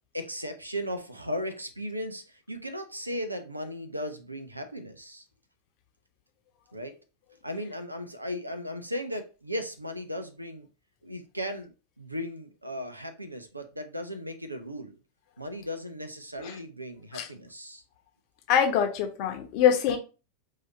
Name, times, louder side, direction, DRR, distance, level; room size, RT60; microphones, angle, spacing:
voice 1, 0.1-5.2 6.7-6.9 7.4-10.7 11.0-14.9 15.4-17.8, equal, 85° right, 0.6 m, -36 dB
voice 2, 18.5-20.0, left 8 dB, 45° left, 0.9 m, -24 dB
4.8 x 2.8 x 2.8 m
figure-of-eight pair, 90°, 0 cm